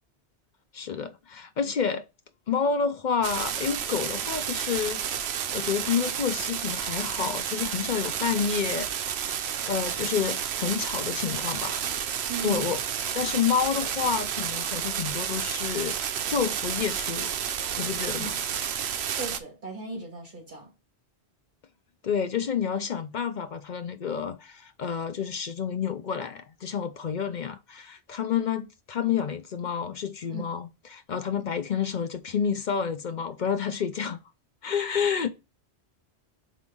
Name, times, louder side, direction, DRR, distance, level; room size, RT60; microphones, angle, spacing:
voice 1, 0.7-2.0 2.5-5.0 5.5-8.9 9.7-12.8 13.1-17.3 17.8-18.4 22.0-34.2 34.6-35.3, left 7 dB, 55° left, 0.6 m, -29 dB
sound 1, 3.2-19.4, right 9 dB, 75° right, 0.9 m, -31 dB
voice 2, 12.3-12.7 18.2-18.3 19.1-20.7 30.3-30.5, right 3 dB, 45° right, 2.6 m, -37 dB
4.9 x 3.7 x 5.3 m
omnidirectional pair, 1.1 m